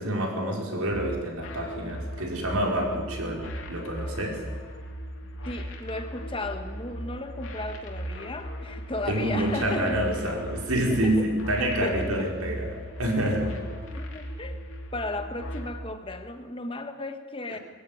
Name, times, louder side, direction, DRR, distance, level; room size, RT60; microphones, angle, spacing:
voice 1, 0.0-4.4 9.1-13.5, right 1 dB, 85° right, 0 dB, 5.2 m, -27 dB
sound 1, 0.9-15.7, equal, 65° left, 3.1 m, -38 dB
voice 2, 2.7-3.0 5.4-10.0 10.9-11.3 11.6-12.3 13.9-14.6 14.9-17.6, left 2 dB, 25° left, 7 dB, 1.3 m, -35 dB
22.0 x 14.5 x 9.3 m, 1.4 s
head